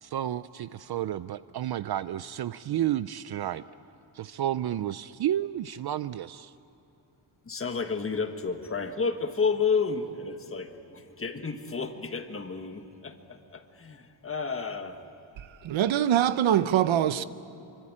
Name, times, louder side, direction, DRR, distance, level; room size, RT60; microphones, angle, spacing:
voice 1, 0.0-3.6 4.1-6.5, right 12 dB, 55° right, 0.5 m, -31 dB
voice 2, 7.5-15.0, left 5 dB, 30° left, 1.5 m, -31 dB
voice 3, 15.4-17.2, right 10 dB, 75° right, 0.9 m, -24 dB
26.0 x 24.5 x 8.7 m
wide cardioid pair, 165°, 47 cm